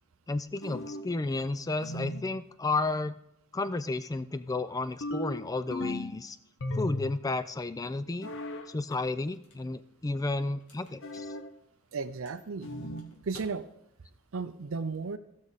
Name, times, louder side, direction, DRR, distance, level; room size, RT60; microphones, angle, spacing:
voice 1, 0.3-3.2 3.5-6.4 6.7-8.3 8.7-11.3, left 2 dB, 15° left, 13 dB, 0.3 m, -32 dB
sound 1, 0.6-1.2 1.8-2.3 5.0-6.2 6.6-7.3 8.2-8.7 11.0-11.5 12.6-13.1, left 1 dB, 60° left, 0.8 m, -36 dB
sound 2, 8.7-14.3, left 2 dB, 90° left, 2.2 m, -57 dB
voice 2, 11.9-12.7 13.2-13.7 14.3-15.2, right 4 dB, 60° right, 10 dB, 0.5 m, -34 dB
16.0 x 6.2 x 4.0 m, 0.81 s
head